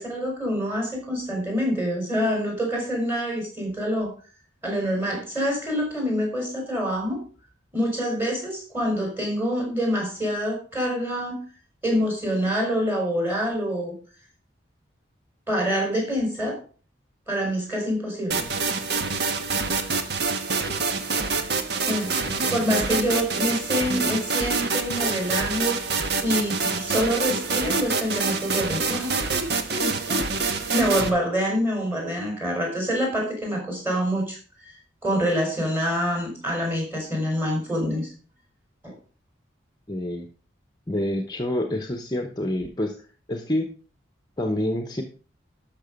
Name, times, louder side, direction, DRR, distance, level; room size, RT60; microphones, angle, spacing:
voice 1, 0.0-4.1 4.6-7.2 7.7-11.4 11.8-14.0 15.5-16.6 17.3-18.4 21.8-25.9 26.2-34.7 35.0-38.1 38.8-38.9, equal, 10° right, 1 dB, 4.9 m, -26 dB
sound 1, 18.3-31.1, right 4 dB, 55° right, 1.3 m, -26 dB
voice 2, 22.0-22.6 39.9-40.3 40.9-42.9 43.3-43.7 44.4-45.0, left 1 dB, 20° left, 5 dB, 1.0 m, -28 dB
12.5 x 6.1 x 5.2 m, 0.38 s
head